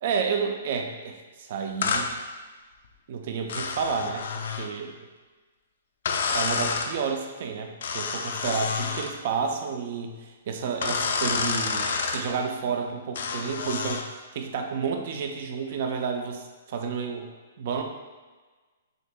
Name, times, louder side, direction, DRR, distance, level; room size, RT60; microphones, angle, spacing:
voice 1, 0.0-2.1 3.1-4.3 4.6-4.9 6.3-10.2 10.5-14.0 14.3-17.3 17.6-17.8, right 5 dB, 45° right, 4 dB, 0.4 m, -30 dB
sound 1, 1.8-2.1 3.5-4.7 6.1-6.9 7.8-9.1 10.8-12.2 13.2-14.1, left 5 dB, 60° left, 0.4 m, -28 dB
6.2 x 2.7 x 2.2 m, 1.3 s
hypercardioid pair, 170°, 0 cm